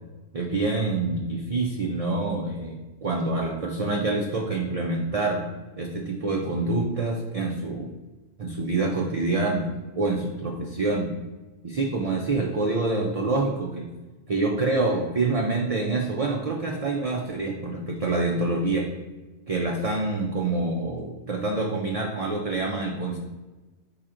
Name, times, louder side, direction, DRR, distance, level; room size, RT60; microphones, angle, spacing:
voice 1, 0.3-5.5 5.8-7.9 8.4-9.7 10.0-11.1 11.6-13.9 14.3-18.9 19.5-23.2, right 3 dB, 60° right, 0 dB, 0.3 m, -26 dB
4.9 x 4.3 x 2.5 m, 1.2 s
omnidirectional pair, 1.3 m